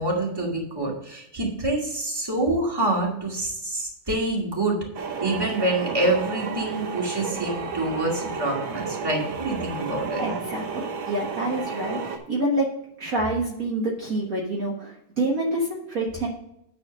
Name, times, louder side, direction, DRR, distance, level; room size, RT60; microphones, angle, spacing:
voice 1, 0.0-4.8 5.2-10.2, right 2 dB, 10° right, -2 dB, 2.1 m, -26 dB
sound 1, 4.9-12.2, right 5 dB, 85° right, 1.9 m, -32 dB
voice 2, 10.2-12.7 13.0-16.3, right 1 dB, 50° right, -3 dB, 1.7 m, -27 dB
9.4 x 4.3 x 6.3 m, 0.79 s
omnidirectional pair, 2.1 m